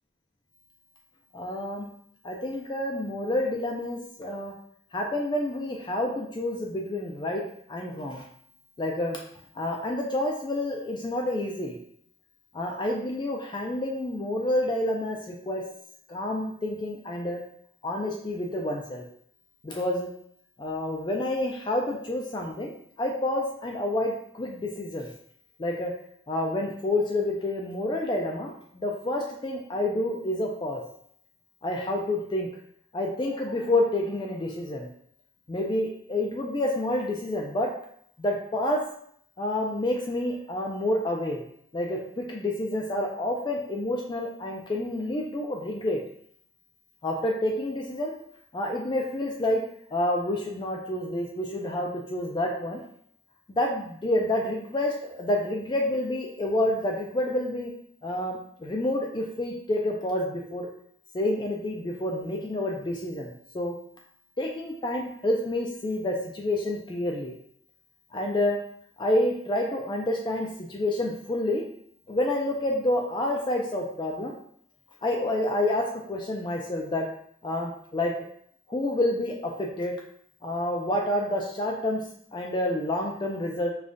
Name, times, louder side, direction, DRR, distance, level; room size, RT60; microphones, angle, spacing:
voice 1, 1.3-1.9 2.2-4.5 4.9-7.4 7.7-8.2 8.8-9.2 9.6-11.8 12.5-15.6 16.1-17.4 17.8-19.0 19.6-20.1 20.6-25.1 25.6-25.9 26.3-30.8 31.6-32.5 32.9-34.9 35.5-37.7 38.2-38.8 39.4-41.4 41.7-46.0 47.0-48.1 48.5-49.6 49.9-52.8 53.5-57.7 58.0-60.7 61.1-63.7 64.4-67.4 68.1-68.6 69.0-71.6 72.1-74.4 75.0-77.1 77.4-78.1 78.7-80.0 80.4-82.0 82.3-83.7, left 1 dB, 25° left, 0 dB, 0.3 m, -28 dB
4.9 x 2.3 x 2.6 m, 0.66 s
head